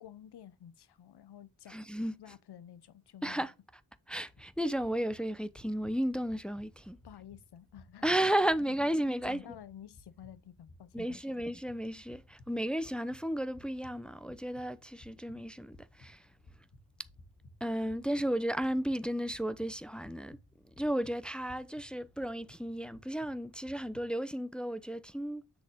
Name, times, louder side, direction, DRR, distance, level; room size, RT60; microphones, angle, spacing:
voice 1, 0.0-1.8 2.2-3.5 7.0-8.1 8.6-11.2, left 10 dB, 75° left, 0.8 m, -51 dB
voice 2, 1.7-2.1 3.2-3.5 4.1-7.0 8.0-9.4 10.9-16.3 17.6-20.4 20.7-25.4, right 1 dB, ahead, 0.7 m, -33 dB
sound 1, 4.2-24.1, left 1 dB, 50° left, 2.3 m, -59 dB
8.0 x 6.4 x 3.7 m
cardioid pair, 50°, 40 cm